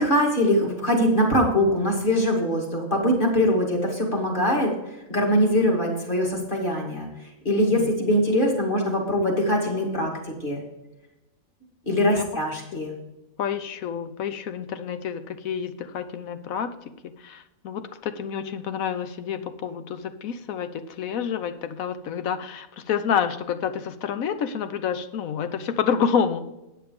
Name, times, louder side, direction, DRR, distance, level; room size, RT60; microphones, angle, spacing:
voice 1, 0.0-4.7 5.1-7.1 7.4-10.1 10.4-10.6 11.9-12.9, equal, 35° left, -1 dB, 2.5 m, -22 dB
voice 2, 11.9-12.2 13.4-16.7 17.2-26.4, left 7 dB, 75° left, 10 dB, 1.2 m, -28 dB
9.3 x 6.6 x 5.2 m, 0.98 s
omnidirectional pair, 1.5 m